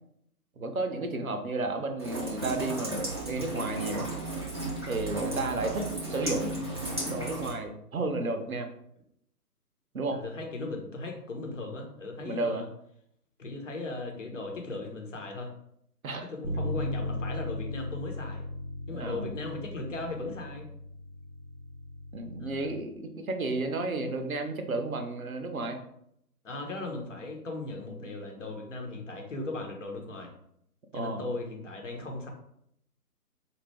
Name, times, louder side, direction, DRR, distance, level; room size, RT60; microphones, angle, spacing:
voice 1, 0.6-4.1 4.9-6.6 7.1-8.7 9.9-10.2 12.2-12.6 16.0-16.3 18.9-19.3 22.1-25.8 30.9-31.2, right 2 dB, 60° right, 5 dB, 0.7 m, -32 dB
Rain, 2.0-7.5, right 2 dB, 15° right, 0.5 m, -34 dB
voice 2, 10.1-12.7 13.4-15.5 16.3-18.5 18.9-20.7 22.4-22.7 26.4-30.3 30.9-32.3, left 2 dB, 50° left, 1 dB, 1.0 m, -38 dB
Bass guitar, 16.4-22.7, left 2 dB, 30° left, 0.6 m, -37 dB
4.2 x 2.6 x 3.3 m, 0.73 s
figure-of-eight pair, 140°, 47 cm